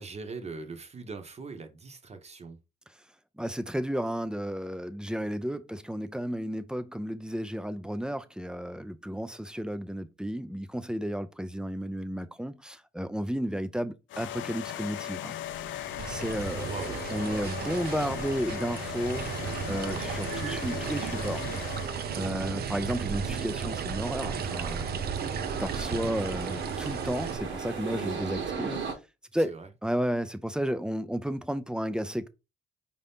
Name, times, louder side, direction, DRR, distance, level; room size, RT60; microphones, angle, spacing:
voice 1, 0.0-2.6 16.6-17.0 28.5-28.7 29.4-29.7, right 4 dB, 35° right, 0.9 m, -41 dB
voice 2, 3.4-15.3 15.7-16.7 17.1-21.5 22.2-24.9 25.6-28.8 29.3-29.5 29.8-32.3, equal, 5° right, 0.5 m, -33 dB
sound 1, 14.1-22.2, left 12 dB, 75° left, 0.4 m, -38 dB
sound 2, 15.5-28.9, right 6 dB, 70° right, 1.2 m, -38 dB
sound 3, 16.0-27.4, right 7 dB, 50° right, 0.6 m, -35 dB
4.9 x 2.7 x 3.5 m
cardioid pair, 90°, 20 cm